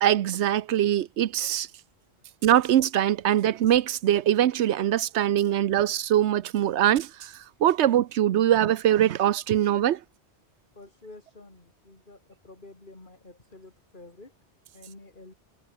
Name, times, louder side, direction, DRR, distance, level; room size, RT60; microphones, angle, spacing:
voice 1, 0.0-1.7 2.4-7.3 7.6-10.0, right 11 dB, 80° right, 0.9 m, -22 dB
voice 2, 10.7-14.4 14.7-15.3, left 2 dB, 45° left, 3.7 m, -49 dB
omnidirectional pair, 1.1 m